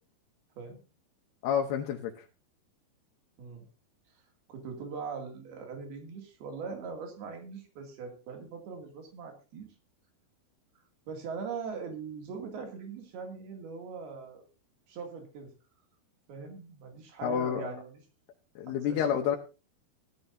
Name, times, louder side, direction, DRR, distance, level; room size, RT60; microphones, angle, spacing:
voice 1, 1.4-2.2 17.2-17.7 18.6-19.4, left 8 dB, 90° left, 2 dB, 3.2 m, -29 dB
voice 2, 4.5-9.7 11.1-14.4 14.9-15.5 16.3-17.9 18.7-19.0, right 5 dB, 75° right, 3 dB, 4.4 m, -41 dB
16.5 x 11.5 x 2.7 m, 0.31 s
omnidirectional pair, 4.5 m